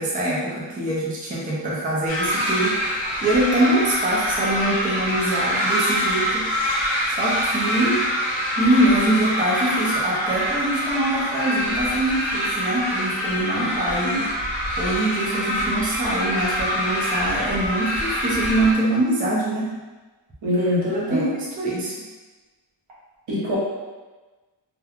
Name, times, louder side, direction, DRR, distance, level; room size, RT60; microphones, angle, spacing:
voice 1, 0.0-6.5 7.1-8.1 8.6-14.3 14.8-19.8 20.6-20.7 20.9-21.9, right 1 dB, 20° right, -6 dB, 0.4 m, -23 dB
sound 1, 2.1-18.7, equal, 15° left, 0.7 m, -25 dB
voice 2, 20.4-21.2 23.3-23.6, left 1 dB, 85° right, -7 dB, 1.0 m, -24 dB
3.0 x 2.1 x 2.3 m, 1.3 s
wide cardioid pair, 170°, 45 cm